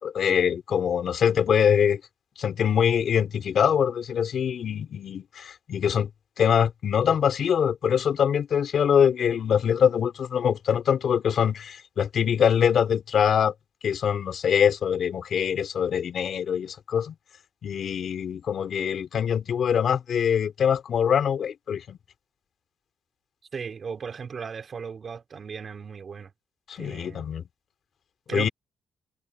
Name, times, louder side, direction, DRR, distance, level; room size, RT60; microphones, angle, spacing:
voice 1, 0.0-2.0 2.4-6.1 6.4-13.5 13.8-17.1 17.6-22.0 26.7-27.4 28.3-28.5, left 8 dB, 60° left, 3.9 m, -23 dB
voice 2, 23.5-26.3 26.8-27.3 28.3-28.5, right 6 dB, 45° right, 5.7 m, -36 dB
cardioid pair, 90°, 0 cm